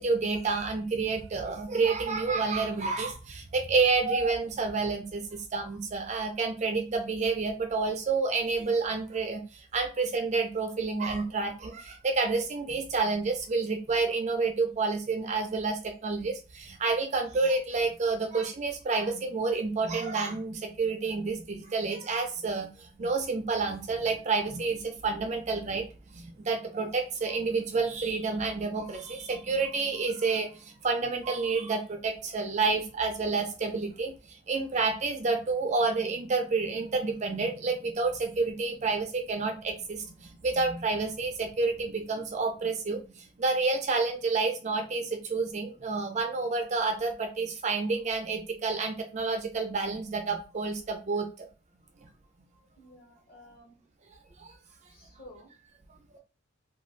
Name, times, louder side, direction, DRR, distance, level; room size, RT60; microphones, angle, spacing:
voice 1, 0.0-25.9 26.1-51.5 54.4-54.5, right 4 dB, 35° right, 5 dB, 0.3 m, -29 dB
voice 2, 52.8-53.7 54.9-55.5, left 1 dB, 45° left, -1 dB, 1.0 m, -52 dB
2.5 x 2.4 x 3.1 m, 0.33 s
head